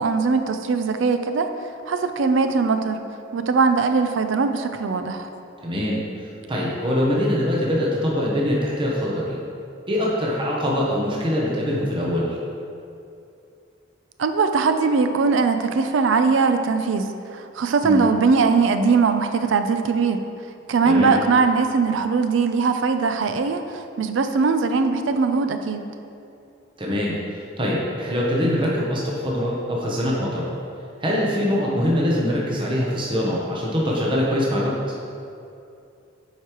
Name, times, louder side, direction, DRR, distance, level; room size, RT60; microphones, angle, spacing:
voice 1, 0.0-1.5 1.9-3.0 3.3-5.3 14.2-20.2 20.7-25.9, right 4 dB, 70° right, 8 dB, 0.4 m, -20 dB
voice 2, 5.6-6.0 6.5-9.4 9.9-12.4 17.8-18.0 20.9-21.2 26.8-30.5 31.0-34.8, equal, 25° right, -4 dB, 0.7 m, -23 dB
8.0 x 4.8 x 3.0 m, 2.6 s
head